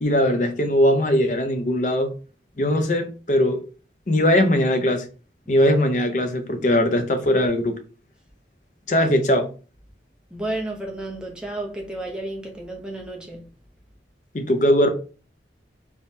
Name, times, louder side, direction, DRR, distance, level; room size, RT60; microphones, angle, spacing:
voice 1, 0.0-2.1 2.6-3.6 4.1-5.0 5.5-7.7 8.9-9.5 14.3-14.9, left 1 dB, 45° left, 0.6 m, -20 dB
voice 2, 10.3-13.4, right 1 dB, 5° right, 0.6 m, -32 dB
3.5 x 3.0 x 2.7 m
head